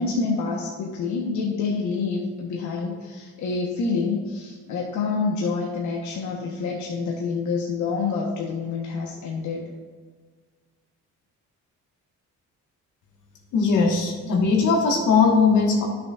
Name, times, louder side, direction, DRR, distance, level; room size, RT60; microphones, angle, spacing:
voice 1, 0.0-9.7, left 4 dB, 75° left, -2 dB, 1.1 m, -27 dB
voice 2, 13.5-15.8, left 4 dB, 90° left, 0 dB, 1.5 m, -19 dB
10.5 x 6.2 x 2.4 m, 1.5 s
cardioid pair, 90°, 30 cm